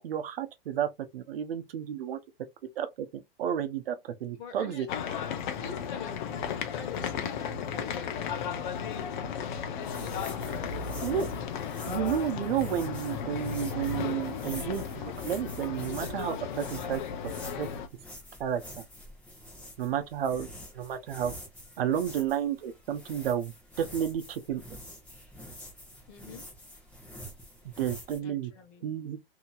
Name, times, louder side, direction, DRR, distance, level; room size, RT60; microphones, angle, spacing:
voice 1, 0.0-2.2 2.8-4.9 5.1-5.2 11.0-11.3 11.9-17.0 17.6-17.7 18.4-18.6 19.8-20.5 20.7-21.3 21.8-23.5 23.8-24.6 27.8-28.5 28.8-29.2, right 9 dB, 70° right, 0.7 m, -31 dB
voice 2, 4.3-4.9 5.5-11.3 11.5-12.0 26.1-26.4 28.2-28.9, left 4 dB, 35° left, 1.0 m, -48 dB
sound 1, 4.9-17.9, left 7 dB, 50° left, 0.6 m, -35 dB
sound 2, 9.8-28.2, equal, 5° left, 0.9 m, -47 dB
2.8 x 2.7 x 2.3 m
hypercardioid pair, 145°, 30 cm